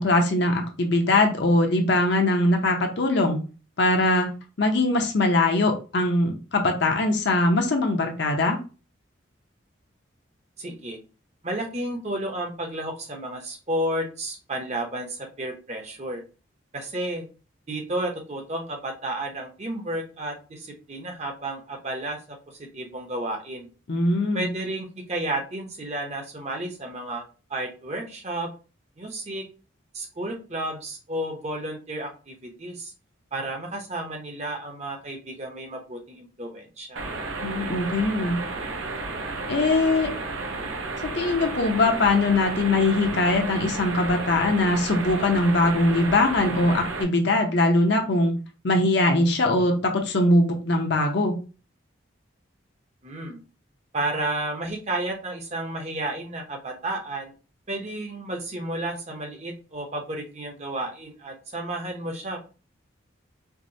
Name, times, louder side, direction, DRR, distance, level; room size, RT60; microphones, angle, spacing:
voice 1, 0.0-3.4 3.8-4.3 4.6-8.6 23.9-24.5 37.4-38.4 39.5-40.1 41.0-48.3 48.6-51.4, left 2 dB, 55° left, 3 dB, 0.7 m, -21 dB
voice 2, 10.6-11.0 11.4-16.2 16.7-17.2 17.7-23.7 24.3-27.2 27.5-28.5 29.0-29.4 29.9-32.9 33.3-37.0 53.0-53.4 53.9-57.3 57.7-62.4, right 1 dB, 35° right, 2 dB, 0.7 m, -32 dB
sound 1, 37.0-47.0, right 3 dB, 80° right, 0.6 m, -32 dB
4.6 x 2.1 x 2.6 m, 0.34 s
head